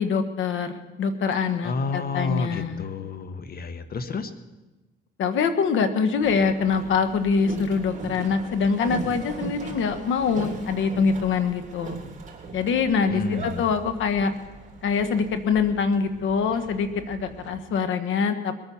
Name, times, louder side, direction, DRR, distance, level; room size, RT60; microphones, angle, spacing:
voice 1, 0.0-2.9 5.2-12.0 12.5-14.3 14.8-18.5, left 5 dB, 75° left, 10 dB, 1.5 m, -24 dB
voice 2, 1.6-4.3 13.1-13.6, left 4 dB, 50° left, 10 dB, 1.4 m, -30 dB
Boat Water vehicle, 6.2-17.6, right 3 dB, 40° right, 3.6 m, -39 dB
21.0 x 9.0 x 7.1 m, 1.1 s
cardioid pair, 90°, 20 cm